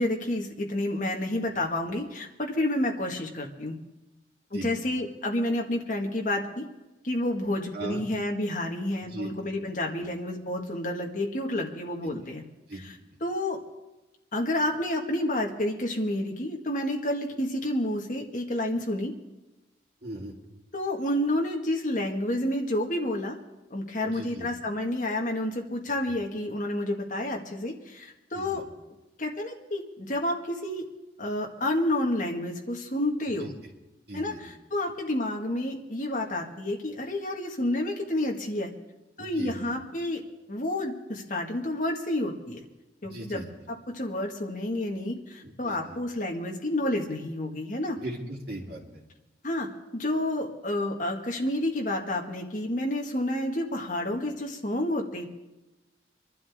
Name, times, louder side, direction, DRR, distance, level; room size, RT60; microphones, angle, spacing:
voice 1, 0.0-3.8 4.5-6.6 7.0-12.4 12.7-13.6 14.3-19.1 20.7-23.4 23.7-28.6 29.2-30.8 31.2-33.5 34.1-38.7 39.2-40.2 40.5-42.6 43.0-48.0 49.4-55.3, left 1 dB, 45° left, 0 dB, 1.9 m, -30 dB
voice 2, 20.0-20.3 24.2-24.5 28.3-28.5 33.4-33.5 34.1-34.4 39.2-39.7 43.0-43.4 45.4-46.0 48.0-48.8, right 1 dB, 55° right, -3 dB, 3.4 m, -38 dB
25.5 x 12.0 x 3.7 m, 1.0 s
head